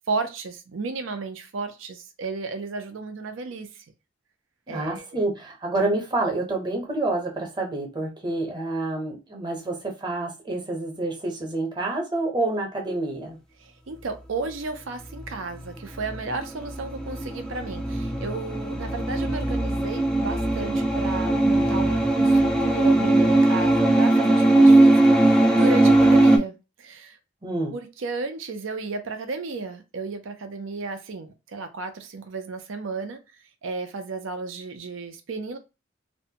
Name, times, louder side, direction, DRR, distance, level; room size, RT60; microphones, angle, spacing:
voice 1, 0.1-3.8 4.7-5.2 13.6-27.2 27.7-33.2 33.6-35.6, right 3 dB, 85° right, 0.5 m, -33 dB
voice 2, 4.7-13.4 27.4-27.7, right 2 dB, 25° right, 0.8 m, -28 dB
sound 1, 16.0-26.4, right 2 dB, 5° left, 0.3 m, -19 dB
2.5 x 2.2 x 2.8 m
head